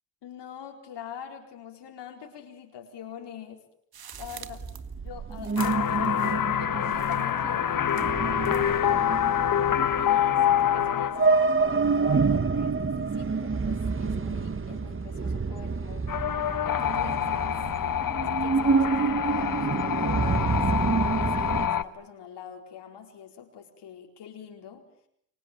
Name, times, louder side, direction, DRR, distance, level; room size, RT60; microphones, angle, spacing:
voice 1, 0.2-3.6 4.2-4.7 5.0-6.2 6.6-9.5 10.0-16.1 16.6-20.7 21.2-24.8, left 8 dB, 75° left, 3 dB, 4.5 m, -44 dB
sound 1, 3.9-6.6 6.8-7.4 7.9-8.8, right 8 dB, 60° right, 1.8 m, -45 dB
sound 2, 4.1-21.7, right 4 dB, 30° right, 1.4 m, -28 dB
sound 3, 5.6-11.8 16.1-21.8, left 9 dB, 50° left, 1.3 m, -26 dB
28.0 x 24.5 x 7.5 m, 0.69 s
cardioid pair, 70°, 42 cm